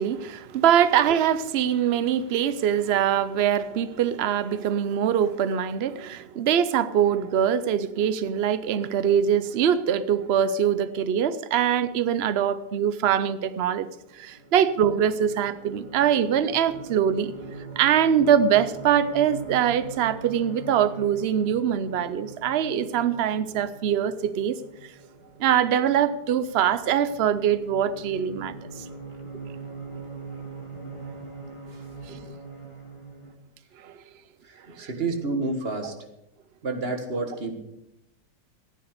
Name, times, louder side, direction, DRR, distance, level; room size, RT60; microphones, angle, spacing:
voice 1, 0.0-13.9 14.1-17.3 17.8-24.6 25.4-28.5 33.8-33.9 34.8-34.9, right 9 dB, 85° right, 14 dB, 0.5 m, -23 dB
sound 1, 13.9-33.3, right 3 dB, 15° left, 2.4 m, -42 dB
voice 2, 31.7-32.4 34.4-35.9 36.6-37.6, right 3 dB, 35° right, 5 dB, 1.9 m, -31 dB
14.5 x 9.7 x 6.7 m, 0.87 s
omnidirectional pair, 1.9 m